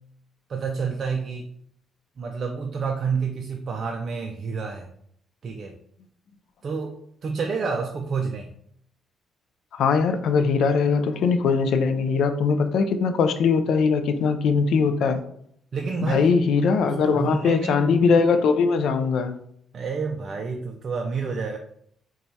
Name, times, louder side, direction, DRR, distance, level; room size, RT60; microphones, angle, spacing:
voice 1, 0.5-1.5 2.2-4.9 5.4-5.8 6.6-8.5 15.7-16.4 16.8-17.8 19.7-21.6, right 5 dB, 50° right, 3 dB, 0.3 m, -29 dB
voice 2, 9.7-15.2 16.1-19.3, left 5 dB, 75° left, 9 dB, 0.3 m, -21 dB
4.3 x 2.3 x 2.7 m, 0.69 s
cardioid pair, 90°, 0 cm